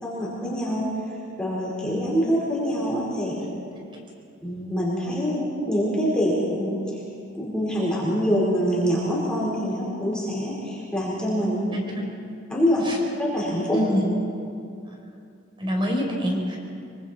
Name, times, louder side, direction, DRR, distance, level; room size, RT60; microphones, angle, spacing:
voice 1, 0.0-0.9 1.4-3.3 4.4-6.8 7.3-11.7 12.5-12.8 13.2-13.8, equal, 5° left, -7 dB, 4.8 m, -25 dB
voice 2, 11.7-12.1 12.8-13.0 13.7-14.1 14.9-15.0 15.6-16.6, equal, 25° right, 0 dB, 4.3 m, -26 dB
25.0 x 24.5 x 4.6 m, 2.5 s
head